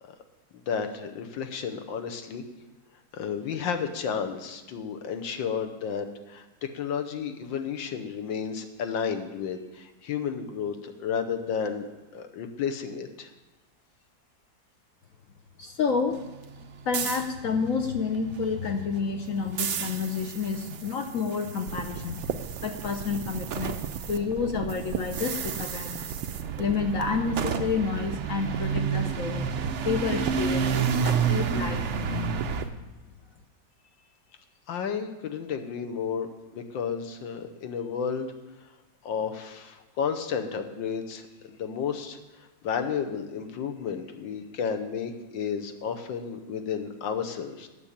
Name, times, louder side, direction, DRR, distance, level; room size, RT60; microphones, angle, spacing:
voice 1, 0.5-2.4 3.1-11.9 12.1-13.3 34.7-38.3 39.0-42.2 42.6-47.7, left 7 dB, 80° left, 6 dB, 1.6 m, -32 dB
voice 2, 15.6-16.2 16.8-22.2 22.6-26.2 26.6-29.5 29.8-32.4, left 5 dB, 60° left, 5 dB, 0.9 m, -29 dB
sound 1, 16.1-24.2 24.4-32.6, right 6 dB, 70° right, 0.6 m, -31 dB
sound 2, 21.7-32.7, right 9 dB, 85° right, 1.4 m, -37 dB
8.7 x 6.9 x 8.6 m, 1.1 s
omnidirectional pair, 2.1 m